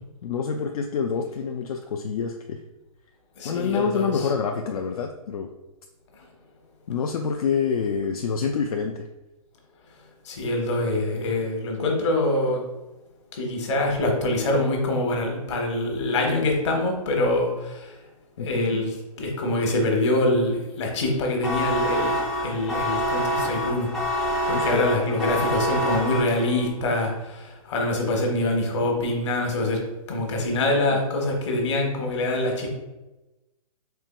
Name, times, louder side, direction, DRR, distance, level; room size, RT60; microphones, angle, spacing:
voice 1, 0.2-2.6 3.4-5.5 6.9-9.0 18.4-18.9 24.5-24.9, left 6 dB, 75° left, 3 dB, 0.4 m, -27 dB
voice 2, 3.4-4.3 10.2-12.6 13.3-18.0 18.4-22.2 22.4-23.9 24.5-29.8 30.1-32.8, left 1 dB, 50° left, 1 dB, 1.0 m, -25 dB
sound 1, 21.4-26.7, equal, ahead, 0.4 m, -26 dB
4.5 x 3.3 x 2.2 m, 1.1 s
hypercardioid pair, 150°, 19 cm